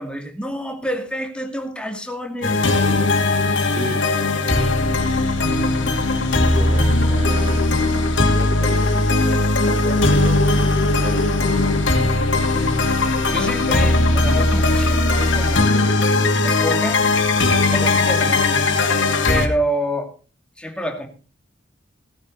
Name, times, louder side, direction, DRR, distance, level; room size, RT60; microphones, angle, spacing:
voice 1, 0.0-2.6 13.3-16.0 16.3-17.0 17.7-18.7 19.3-20.1 20.6-21.1, equal, 5° left, 3 dB, 2.4 m, -28 dB
sound 1, 2.4-19.5, left 2 dB, 75° left, 2.6 m, -18 dB
voice 2, 6.5-7.7 8.3-9.0 9.6-10.4 11.0-12.0, right 1 dB, 30° right, 5 dB, 2.6 m, -33 dB
17.0 x 10.5 x 4.0 m, 0.35 s
head